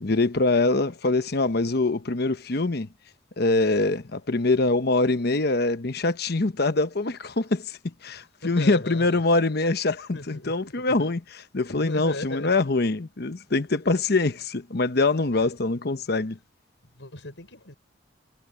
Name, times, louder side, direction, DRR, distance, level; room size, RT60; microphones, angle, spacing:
voice 1, 0.0-2.9 3.4-11.2 11.5-16.4, left 3 dB, 60° left, 1.0 m, -24 dB
voice 2, 8.1-9.2 10.1-11.1 11.7-12.5 15.4-15.5 16.8-17.7, left 2 dB, 90° left, 5.9 m, -38 dB
head